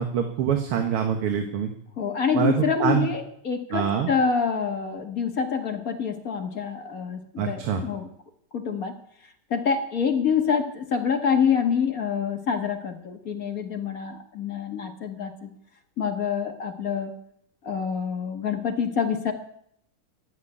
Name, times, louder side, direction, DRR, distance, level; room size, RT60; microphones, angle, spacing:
voice 1, 0.0-1.7 2.3-3.1 3.7-4.1 7.4-7.8, right 8 dB, 85° right, 4 dB, 2.3 m, -25 dB
voice 2, 2.0-8.1 8.5-9.0 9.5-15.5 16.0-17.2 17.6-19.3, left 6 dB, 45° left, 4 dB, 1.8 m, -26 dB
13.0 x 8.2 x 9.9 m, 0.69 s
omnidirectional pair, 2.4 m